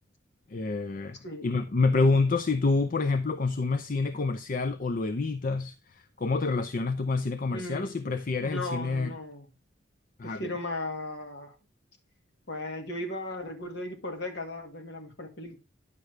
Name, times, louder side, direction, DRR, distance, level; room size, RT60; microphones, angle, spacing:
voice 1, 0.5-9.1 10.2-10.5, left 3 dB, 45° left, 0.6 m, -28 dB
voice 2, 7.5-7.9 8.4-9.5 10.2-11.5 12.5-15.6, left 2 dB, 65° left, 2.0 m, -36 dB
9.9 x 6.5 x 3.3 m
head